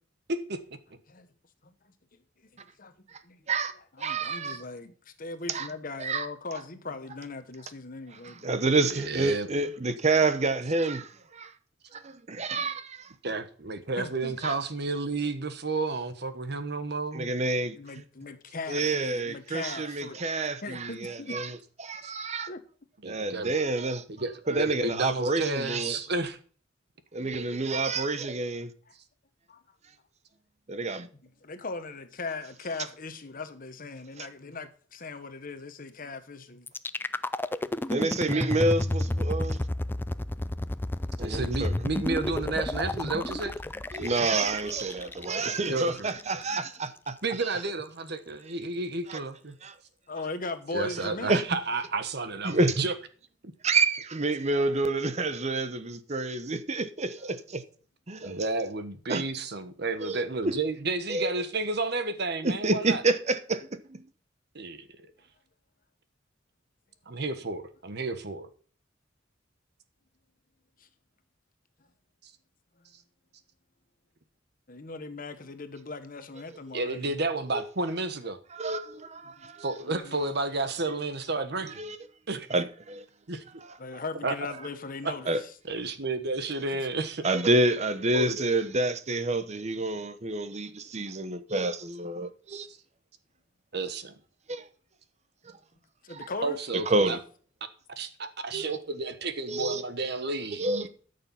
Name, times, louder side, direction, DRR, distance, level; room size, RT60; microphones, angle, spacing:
voice 1, 0.3-0.8 8.9-9.5 13.2-17.4 22.0-22.1 23.0-23.5 24.1-26.4 41.2-43.6 45.6-45.9 47.2-49.6 50.7-52.9 58.2-63.0 64.5-65.1 67.1-68.5 72.2-72.3 76.7-78.4 79.6-81.8 82.3-82.5 83.3-83.4 84.2-84.4 85.0-85.1 85.7-87.3 88.1-88.4 92.5-92.7 93.7-94.1 96.4-97.2 98.0-100.9, right 3 dB, 60° right, 1.3 m, -31 dB
voice 2, 2.8-3.5 4.0-8.5 14.0-14.3 17.7-20.2 20.6-21.4 22.5-22.6 29.5-29.6 31.4-36.7 44.0-44.1 45.0-45.1 50.1-51.5 74.7-77.2 79.4-79.5 79.8-80.3 83.8-85.5 96.0-96.6, left 3 dB, 45° left, 1.2 m, -39 dB
voice 3, 3.5-4.6 5.5-5.7 6.0-6.3 8.4-11.5 11.9-13.1 14.4-14.5 17.1-18.0 18.7-22.5 23.0-24.0 24.5-26.0 27.1-28.7 30.7-31.1 34.2-34.3 37.9-39.6 41.2-41.7 43.9-47.2 49.1-49.2 49.6-49.7 51.3-51.4 52.4-52.8 53.6-57.6 58.1-58.4 59.1-59.2 60.0-60.5 61.1-61.3 62.4-64.0 76.7-76.8 77.5-77.6 78.5-79.7 81.6-82.0 82.5-83.0 83.7-83.8 85.3-85.4 87.2-92.7 94.5-94.6 96.1-96.2 96.9-97.2 98.5-98.7 99.5-99.8 100.6-100.9, right 2 dB, 35° right, 0.8 m, -28 dB
sound 1, 36.7-46.7, left 1 dB, 10° left, 0.4 m, -31 dB
13.5 x 6.7 x 5.6 m
head